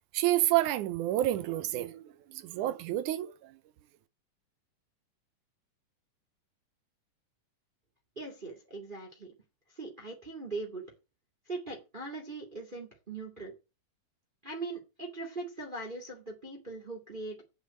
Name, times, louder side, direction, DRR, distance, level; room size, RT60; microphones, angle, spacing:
voice 1, 0.1-3.6, right 14 dB, 85° right, 2.2 m, -29 dB
voice 2, 8.2-9.3 9.7-10.8 11.5-13.5 14.4-17.4, right 3 dB, 15° right, 2.3 m, -40 dB
8.2 x 6.9 x 7.7 m
omnidirectional pair, 3.5 m